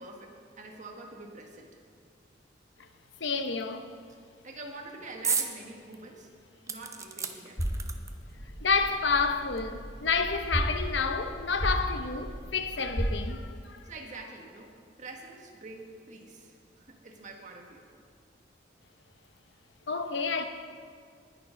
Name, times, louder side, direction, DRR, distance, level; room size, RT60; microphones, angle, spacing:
voice 1, 0.0-1.7 4.4-6.3 6.6-7.6 13.8-17.8, right 2 dB, 45° right, 1.6 m, -46 dB
voice 2, 3.2-3.9 8.6-13.8 19.9-20.5, left 4 dB, 75° left, 0.9 m, -29 dB
sound 1, 5.2-5.5 5.9-6.0 6.7-8.3 9.2-9.3 9.6-9.7, right 5 dB, 15° right, 0.7 m, -33 dB
sound 2, 7.6-13.2, equal, 35° left, 2.6 m, -35 dB
19.5 x 6.7 x 5.2 m
head